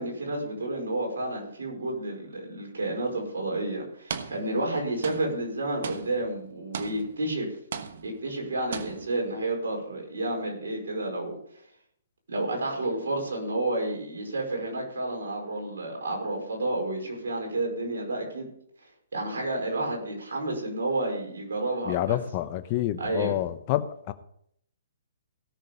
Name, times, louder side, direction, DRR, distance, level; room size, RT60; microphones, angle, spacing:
voice 1, 0.0-7.5 8.0-11.4 12.3-18.5 19.1-22.2 23.0-23.3, right 2 dB, 80° right, 1 dB, 5.1 m, -30 dB
sound 1, 3.0-3.2 4.1-4.7 5.0-7.4 7.7-8.4 8.7-9.3, right 6 dB, 65° right, 1.2 m, -38 dB
voice 2, 21.8-24.1, left 13 dB, 35° left, 10 dB, 0.9 m, -28 dB
17.0 x 6.6 x 5.2 m, 0.68 s
hypercardioid pair, 145°, 0 cm